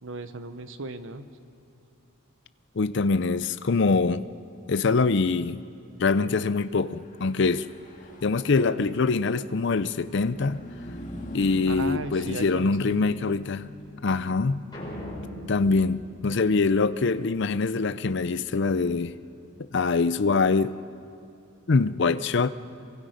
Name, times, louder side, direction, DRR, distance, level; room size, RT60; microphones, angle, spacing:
voice 1, 0.0-1.3 11.7-13.2, right 3 dB, 65° right, 1.0 m, -37 dB
voice 2, 2.8-4.3 4.7-5.6 6.0-7.7 8.2-10.6 11.3-13.7 14.0-14.6 15.5-19.2 19.7-20.8 21.7-22.5, left 4 dB, 55° left, 0.5 m, -24 dB
Car passing by / Truck, 6.9-20.6, left 1 dB, 35° left, 1.9 m, -45 dB
sound 1, 14.7-17.2, equal, 20° left, 7.1 m, -40 dB
27.0 x 23.5 x 5.1 m
head